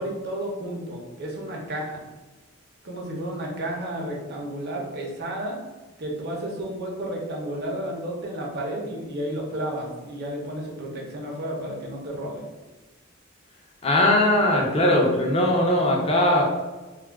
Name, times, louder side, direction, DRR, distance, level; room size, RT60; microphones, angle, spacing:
voice 1, 0.0-2.0 2.8-5.6 6.0-12.5, right 1 dB, 55° right, -1 dB, 0.7 m, -32 dB
voice 2, 13.8-16.4, left 1 dB, 30° left, -1 dB, 0.5 m, -20 dB
2.3 x 2.2 x 3.4 m, 1.2 s
head